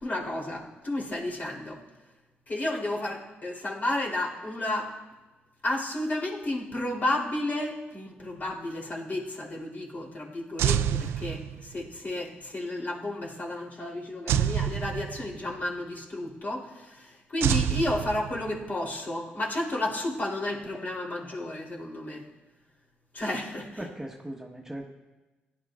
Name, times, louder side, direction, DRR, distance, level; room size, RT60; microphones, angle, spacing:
voice 1, 0.0-1.8 2.5-4.9 5.6-22.2 23.1-23.8, left 1 dB, 40° left, -2 dB, 3.4 m, -32 dB
sound 1, 10.6-11.9 14.3-15.5 17.4-18.7, right 9 dB, 75° right, 0.4 m, -27 dB
voice 2, 23.8-24.9, right 1 dB, 10° right, 0 dB, 1.3 m, -38 dB
16.5 x 10.5 x 2.5 m, 1.1 s
supercardioid pair, 55°, 4 cm